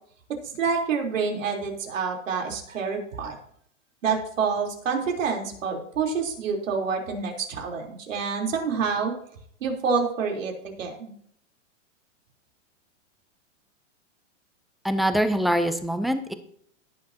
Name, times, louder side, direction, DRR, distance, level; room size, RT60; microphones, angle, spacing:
voice 1, 0.3-3.4 4.0-9.1 9.6-11.1, right 5 dB, 90° right, 1 dB, 3.6 m, -27 dB
voice 2, 14.8-16.3, equal, ahead, 9 dB, 0.4 m, -24 dB
18.0 x 7.4 x 2.8 m, 0.65 s
hypercardioid pair, 140°, 38 cm